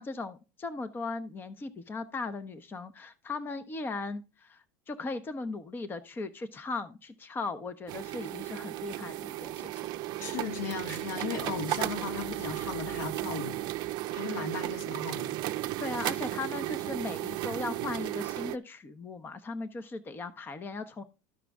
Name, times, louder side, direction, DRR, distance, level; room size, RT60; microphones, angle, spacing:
voice 1, 0.0-9.7 14.3-14.4 15.8-21.0, left 3 dB, 20° left, 0.8 m, -38 dB
sound 1, 7.9-18.6, right 15 dB, 50° right, 0.5 m, -35 dB
voice 2, 10.2-13.6 14.1-15.3, left 5 dB, 80° left, 2.2 m, -36 dB
13.0 x 5.0 x 3.5 m
hypercardioid pair, 100°, 9 cm